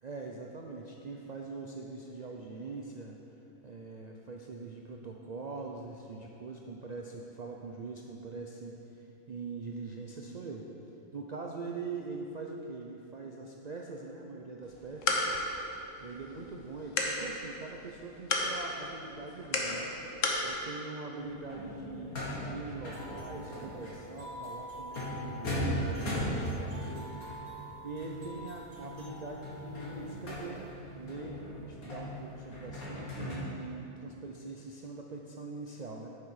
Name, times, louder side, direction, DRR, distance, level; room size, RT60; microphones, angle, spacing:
voice 1, 0.0-3.2 3.6-10.7 11.1-15.3 16.0-19.9 20.4-22.2 22.5-27.1 27.8-30.6 31.0-36.1, right 3 dB, 80° right, 0 dB, 0.3 m, -43 dB
sound 1, 14.6-20.5, left 2 dB, 60° left, 1.3 m, -34 dB
sound 2, 21.1-33.4, equal, 80° left, 2.3 m, -38 dB
sound 3, 22.8-30.7, equal, 60° right, 2.2 m, -47 dB
10.0 x 6.8 x 4.8 m, 3.0 s
omnidirectional pair, 1.5 m